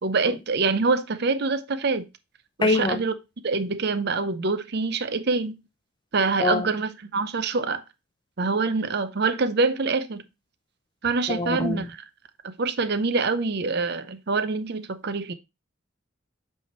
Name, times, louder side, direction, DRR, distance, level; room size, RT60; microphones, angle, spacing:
voice 1, 0.0-2.1 2.6-3.1 3.4-5.6 6.1-7.8 8.4-10.2 11.0-12.1 12.4-15.3, right 4 dB, 55° right, 0.7 m, -25 dB
voice 2, 2.6-3.0 6.4-6.7 11.3-11.8, left 3 dB, 25° left, 0.5 m, -24 dB
8.2 x 3.5 x 4.3 m
head